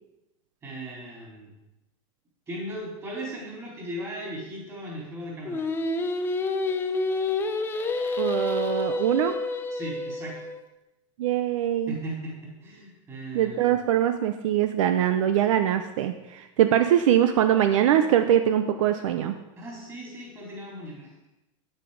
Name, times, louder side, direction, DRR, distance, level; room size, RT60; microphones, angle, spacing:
voice 1, 0.6-1.5 2.5-5.7 9.7-10.4 11.9-13.7 19.6-21.3, right 1 dB, 20° right, -4 dB, 4.2 m, -37 dB
Singing, 5.5-10.6, left 3 dB, 15° left, 0.6 m, -28 dB
voice 2, 8.2-9.3 11.2-11.9 13.3-19.3, right 10 dB, 75° right, 8 dB, 0.7 m, -22 dB
9.2 x 8.1 x 5.1 m, 0.96 s
supercardioid pair, 150°, 17 cm